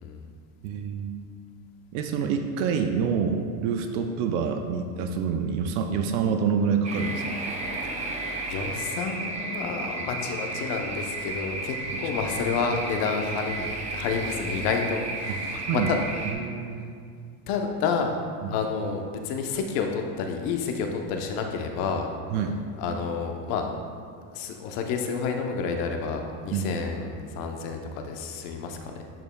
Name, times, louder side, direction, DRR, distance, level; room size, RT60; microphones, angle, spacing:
voice 1, 0.6-1.1 1.9-7.2 11.9-12.0 15.3-15.9 16.3-16.9 18.4-18.6 22.3-22.6 26.5-26.8, right 6 dB, 60° right, 6 dB, 0.6 m, -27 dB
sound 1, 6.8-16.3, right 2 dB, 15° right, 0.5 m, -33 dB
voice 2, 8.5-16.0 17.5-18.2 18.5-22.1 22.8-23.7 24.3-28.9, left 5 dB, 55° left, 3 dB, 0.9 m, -29 dB
11.0 x 5.4 x 2.2 m, 2.2 s
supercardioid pair, 140°, 50 cm